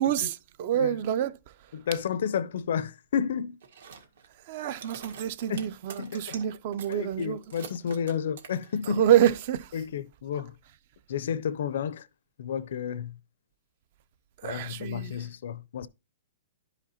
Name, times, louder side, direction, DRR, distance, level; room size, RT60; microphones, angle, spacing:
voice 1, 0.0-1.3 4.5-7.4 8.9-9.7 14.4-15.2, right 10 dB, 40° right, 0.4 m, -27 dB
voice 2, 1.7-3.6 5.5-5.7 6.0-6.4 6.9-9.0 9.7-10.5 11.1-12.1 12.4-13.2 14.4-15.9, left 8 dB, 65° left, 0.5 m, -31 dB
sound 1, 3.6-4.4 4.7-6.5 6.7-9.4, right 6 dB, 75° right, 1.7 m, -45 dB
11.0 x 5.0 x 2.8 m
hypercardioid pair, 165°, 0 cm